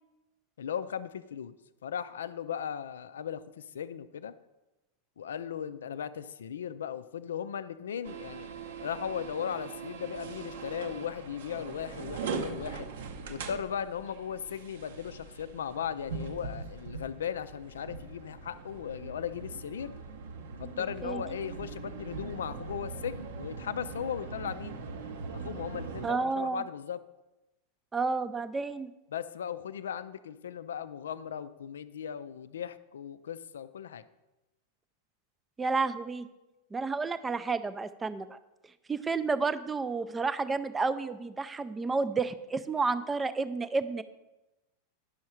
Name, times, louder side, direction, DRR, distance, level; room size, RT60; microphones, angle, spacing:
voice 1, 0.6-1.6 1.8-4.3 5.2-8.5 8.8-12.9 13.3-19.9 20.6-24.8 25.3-27.0 29.1-34.0, left 8 dB, 65° left, 14 dB, 0.4 m, -37 dB
sound 1, 8.0-26.1, right 5 dB, 55° right, 0.7 m, -41 dB
voice 2, 26.0-26.6 27.9-28.9 35.6-36.3 36.7-38.4 38.9-44.0, right 4 dB, 15° right, 13 dB, 0.4 m, -31 dB
10.0 x 6.4 x 4.3 m, 1.0 s
figure-of-eight pair, 90°, 0 cm